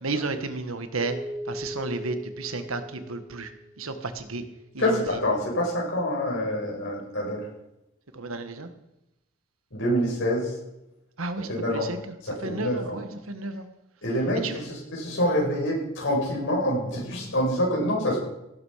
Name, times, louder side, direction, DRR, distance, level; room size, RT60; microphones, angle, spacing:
voice 1, 0.0-1.1 1.5-3.5 3.8-4.4 4.7-5.0 8.1-8.7 11.2-12.0 12.4-13.6 14.4-14.6, right 3 dB, 80° right, 9 dB, 1.5 m, -32 dB
Keyboard (musical), 1.0-4.0, equal, 25° left, 4.3 m, -39 dB
voice 2, 4.8-7.5 9.7-10.5 11.5-11.9 12.2-13.0 14.0-18.2, equal, 60° left, -2 dB, 5.9 m, -26 dB
17.5 x 11.5 x 5.0 m, 0.89 s
head